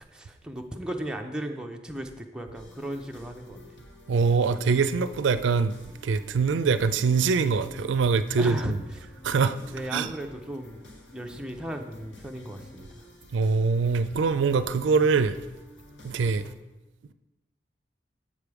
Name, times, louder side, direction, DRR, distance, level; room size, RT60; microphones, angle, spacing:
voice 1, 0.1-3.6 8.4-8.7 9.7-12.9, right 1 dB, 5° right, 0.5 m, -36 dB
sound 1, 2.5-16.5, left 1 dB, 75° left, 1.2 m, -49 dB
voice 2, 4.1-5.7 6.0-8.8 9.2-9.5 9.9-10.1 13.3-15.3 16.0-16.4, right 5 dB, 80° right, 0.4 m, -23 dB
7.4 x 5.2 x 4.7 m
head